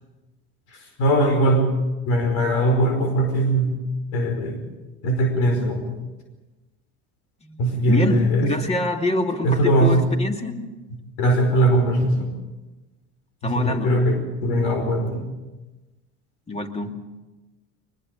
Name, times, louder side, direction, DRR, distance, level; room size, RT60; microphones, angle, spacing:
voice 1, 1.0-1.7 2.1-3.8 4.1-4.6 5.0-6.0 7.6-8.5 9.4-10.0 11.2-12.3 13.4-15.2, right 1 dB, 85° left, 4 dB, 5.2 m, -20 dB
voice 2, 7.9-10.7 13.4-14.0 16.5-17.0, left 2 dB, 20° left, 4 dB, 2.5 m, -26 dB
22.5 x 21.0 x 6.9 m, 1.1 s
supercardioid pair, 120°, 32 cm